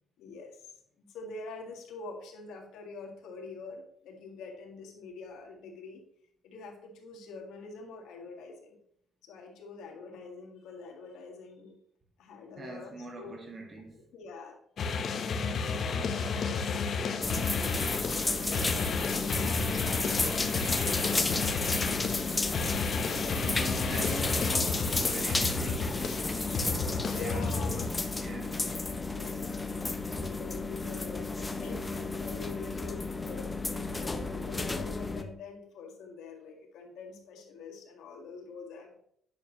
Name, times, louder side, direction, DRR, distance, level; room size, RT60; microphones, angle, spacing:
voice 1, 0.2-0.7 1.0-6.0 6.4-8.8 9.2-11.8 12.2-13.3 14.1-14.6 15.4-23.4 27.0-28.0 28.5-28.7 29.1-29.4 30.1-39.0, left 4 dB, 85° left, 1.8 m, -46 dB
voice 2, 12.6-14.0 22.9-27.5 28.1-28.7 33.9-34.1, right 2 dB, 45° right, 2.0 m, -43 dB
sound 1, 14.8-27.9, left 4 dB, 60° left, 1.0 m, -32 dB
sound 2, 17.2-35.2, left 3 dB, 20° left, 0.8 m, -32 dB
9.5 x 6.3 x 3.1 m
cardioid pair, 90°, 0 cm